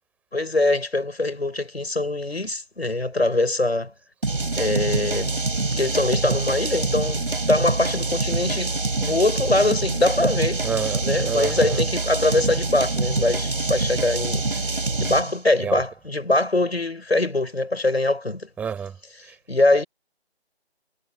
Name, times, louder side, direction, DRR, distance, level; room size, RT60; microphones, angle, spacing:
voice 1, 0.3-3.9 4.6-5.4 5.8-10.6 11.0-14.5 15.0-18.5 19.5-19.8, left 2 dB, 70° left, 6.5 m, -23 dB
sound 1, 4.2-15.4, right 3 dB, 55° right, 5.0 m, -25 dB
voice 2, 10.6-11.8 15.6-15.8 18.6-18.9, right 7 dB, 5° right, 5.9 m, -29 dB
figure-of-eight pair, 155°, 32 cm